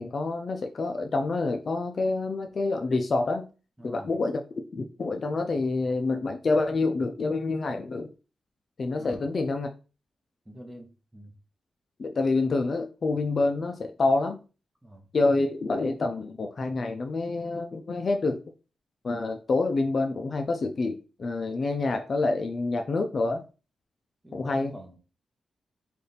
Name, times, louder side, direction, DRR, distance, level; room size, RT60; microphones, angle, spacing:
voice 1, 0.0-3.5 3.8-4.4 4.7-8.1 8.8-9.7 12.0-14.4 15.1-18.4 19.0-23.4 24.3-24.7, left 3 dB, 40° left, 5 dB, 0.4 m, -27 dB
voice 2, 3.8-4.1 9.0-9.3 10.4-11.3 14.8-15.1 24.2-25.0, right 1 dB, 10° right, 3 dB, 0.8 m, -46 dB
3.4 x 2.4 x 4.1 m, 0.33 s
wide cardioid pair, 170°, 0 cm